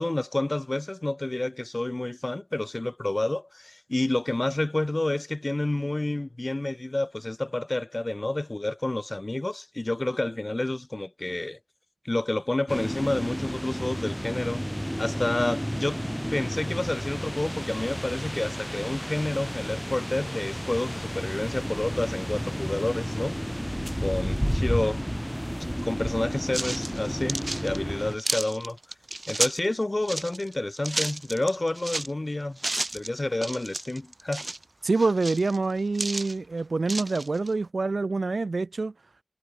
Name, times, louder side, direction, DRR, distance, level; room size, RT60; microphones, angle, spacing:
voice 1, 0.0-11.6 12.0-14.6 15.0-16.0 16.3-23.7 24.0-25.1 25.8-28.8 29.3-32.6 32.9-34.5, left 2 dB, 35° left, 5.4 m, -29 dB
sound 1, 12.7-28.2, equal, ahead, 1.6 m, -32 dB
sound 2, 26.5-29.6 30.0-32.1 32.6-33.1 33.4-34.6 35.1-36.3 36.9-37.5, right 2 dB, 40° right, 3.3 m, -32 dB
voice 2, 34.8-38.9, right 3 dB, 75° right, 0.7 m, -26 dB
wide cardioid pair, 70°, 0 cm